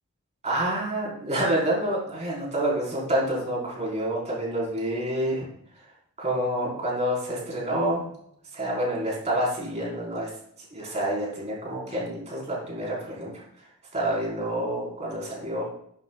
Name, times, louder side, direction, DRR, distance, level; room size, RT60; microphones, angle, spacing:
voice 1, 0.4-5.5 6.2-8.0 8.5-10.3 10.7-13.4 13.9-15.6, right 1 dB, 30° right, -4 dB, 4.6 m, -28 dB
12.0 x 11.5 x 2.4 m, 0.68 s
head